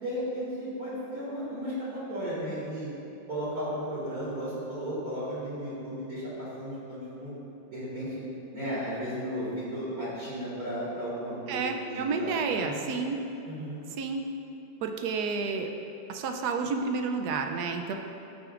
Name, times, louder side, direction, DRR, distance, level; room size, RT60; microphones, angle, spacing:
voice 1, 0.0-2.9 3.3-7.4 7.7-8.1 8.5-12.3 12.6-13.1 13.4-13.8, equal, 45° right, -12 dB, 2.8 m, -34 dB
voice 2, 11.5-13.2 13.9-14.3 14.8-15.7 16.1-17.9, right 4 dB, 70° right, 4 dB, 1.0 m, -30 dB
17.0 x 6.3 x 2.5 m, 2.8 s
omnidirectional pair, 2.1 m